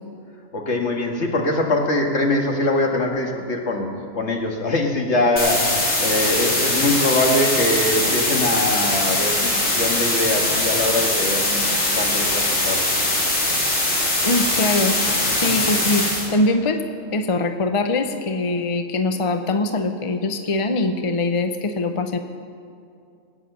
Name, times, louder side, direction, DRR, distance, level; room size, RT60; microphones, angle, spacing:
voice 1, 0.5-3.9 4.1-11.7 12.0-13.3, left 1 dB, 55° left, 1 dB, 2.0 m, -23 dB
sound 1, 5.4-16.3, left 1 dB, 75° left, 3.1 m, -21 dB
voice 2, 14.2-15.0 15.4-16.0 16.3-16.8 17.1-22.2, left 2 dB, 35° left, 7 dB, 0.6 m, -22 dB
19.0 x 9.1 x 6.7 m, 2.5 s
omnidirectional pair, 1.4 m